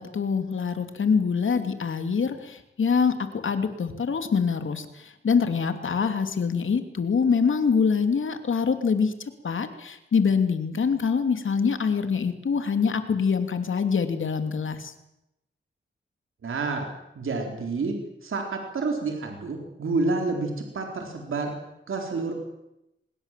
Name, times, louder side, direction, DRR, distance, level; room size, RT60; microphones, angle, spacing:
voice 1, 0.0-9.1 9.4-14.9, left 5 dB, 70° left, 8 dB, 2.8 m, -25 dB
voice 2, 16.4-16.9 17.2-21.6 21.9-22.3, right 3 dB, 75° right, 3 dB, 4.1 m, -29 dB
25.0 x 21.0 x 7.6 m, 0.86 s
cardioid pair, 75°, 21 cm